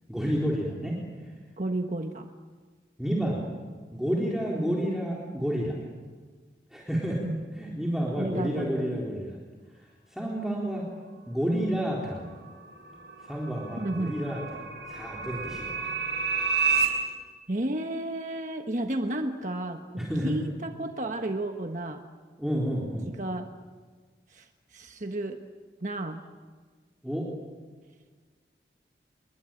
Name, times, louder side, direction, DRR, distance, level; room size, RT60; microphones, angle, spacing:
voice 1, 0.1-1.0 3.0-3.5 3.9-5.8 6.7-7.2 7.5-9.4 10.1-10.9 11.3-12.3 13.2-14.6 14.9-15.9 20.0-20.3 22.4-23.1 27.0-27.3, equal, 5° right, -4 dB, 3.9 m, -30 dB
voice 2, 1.6-2.3 7.2-7.4 8.2-9.0 13.8-14.2 17.5-22.0 23.1-23.5 24.3-25.4 25.8-26.2, right 1 dB, 45° right, 4 dB, 1.3 m, -32 dB
sound 1, 12.5-16.9, right 6 dB, 75° right, 6.6 m, -30 dB
28.5 x 23.0 x 8.9 m, 1.5 s
head